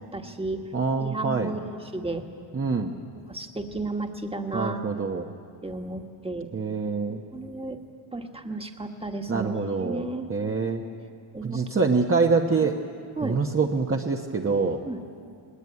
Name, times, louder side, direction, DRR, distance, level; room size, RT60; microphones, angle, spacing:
voice 1, 0.0-0.7 1.0-2.3 3.3-4.8 5.6-6.5 7.3-7.8 8.1-10.3 11.3-11.6 13.2-13.4 14.8-15.0, right 2 dB, 10° right, 4 dB, 1.6 m, -33 dB
voice 2, 0.7-1.5 2.5-3.0 4.5-5.3 6.5-7.2 9.3-10.8 11.4-12.7 13.2-14.8, right 4 dB, 25° right, 1 dB, 1.1 m, -25 dB
20.0 x 20.0 x 9.6 m, 2.4 s
wide cardioid pair, 115°, 49 cm